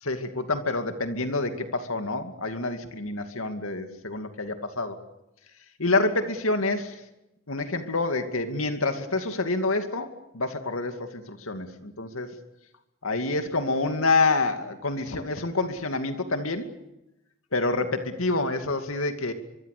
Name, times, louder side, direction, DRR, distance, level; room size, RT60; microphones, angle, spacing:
voice 1, 0.0-5.0 5.8-6.9 7.5-12.4 13.0-16.7 17.5-19.3, left 3 dB, 80° left, 7 dB, 2.5 m, -27 dB
24.5 x 24.0 x 6.8 m, 0.90 s
head